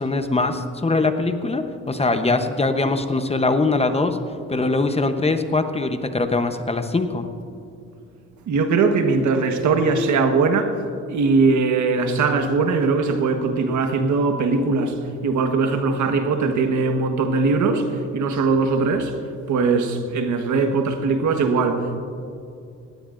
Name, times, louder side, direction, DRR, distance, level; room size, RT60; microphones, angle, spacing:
voice 1, 0.0-4.2 4.5-7.3, left 3 dB, 20° left, 8 dB, 0.9 m, -22 dB
voice 2, 8.5-10.8 11.1-15.0 15.2-19.1 19.5-22.1, right 4 dB, 75° right, 6 dB, 1.4 m, -20 dB
20.0 x 16.0 x 2.6 m, 2.5 s
cardioid pair, 90°, 30 cm